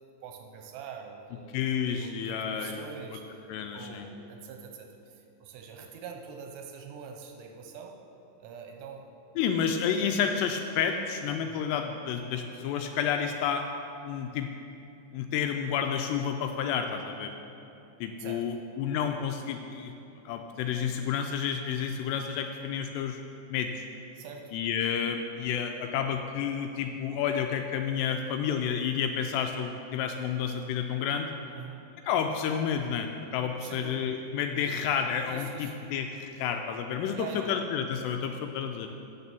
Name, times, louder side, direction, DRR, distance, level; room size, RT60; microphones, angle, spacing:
voice 1, 0.0-1.6 2.0-3.4 3.7-7.9 8.4-9.1 11.4-11.7 18.2-18.4 24.1-24.5 31.4-31.9 33.6-34.1 35.2-35.8 37.1-37.6 38.8-39.0, right 6 dB, 85° right, 3 dB, 2.9 m, -44 dB
voice 2, 1.5-2.8 3.5-4.1 9.4-13.6 14.0-14.5 15.1-17.3 18.0-19.9 20.3-23.2 23.5-23.9 24.5-31.3 32.0-38.9, left 7 dB, 85° left, 5 dB, 2.5 m, -30 dB
8.7 x 6.6 x 6.9 m, 2.8 s
omnidirectional pair, 5.2 m